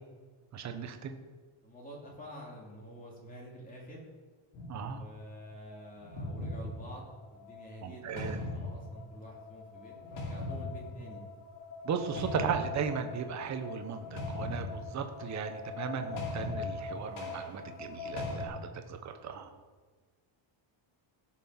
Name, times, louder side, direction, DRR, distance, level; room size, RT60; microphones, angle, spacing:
voice 1, 0.5-1.2 4.7-5.0 7.8-8.4 11.8-19.5, right 6 dB, 35° right, 7 dB, 1.0 m, -36 dB
voice 2, 1.6-4.1 4.8-11.2, equal, 15° left, -2 dB, 2.8 m, -48 dB
sound 1, 4.5-4.9 5.9-18.5, left 2 dB, 70° left, 3.2 m, -40 dB
16.5 x 6.2 x 5.7 m, 1.4 s
cardioid pair, 170°, 48 cm